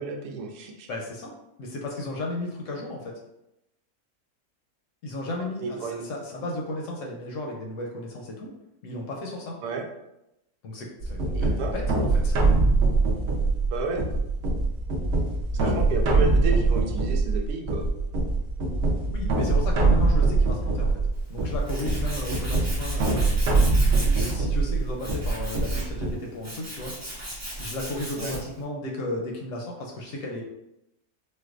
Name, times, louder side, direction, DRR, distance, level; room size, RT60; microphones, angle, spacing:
voice 1, 0.0-0.9 5.6-6.0 9.6-9.8 11.4-11.7 13.7-14.0 15.6-17.9 28.2-28.3, right 3 dB, 85° right, 2 dB, 1.1 m, -31 dB
voice 2, 0.9-1.3 1.6-3.1 5.0-8.5 8.8-9.5 10.6-12.4 15.6-15.9 19.1-20.9 21.3-23.3 23.9-26.9 27.6-30.4, left 1 dB, 65° left, -1 dB, 0.9 m, -34 dB
sound 1, 11.0-26.1, right 3 dB, 60° right, 0.8 m, -23 dB
Tools, 21.1-28.6, right 1 dB, 15° right, 0.8 m, -37 dB
4.4 x 2.2 x 2.4 m, 0.87 s
omnidirectional pair, 1.6 m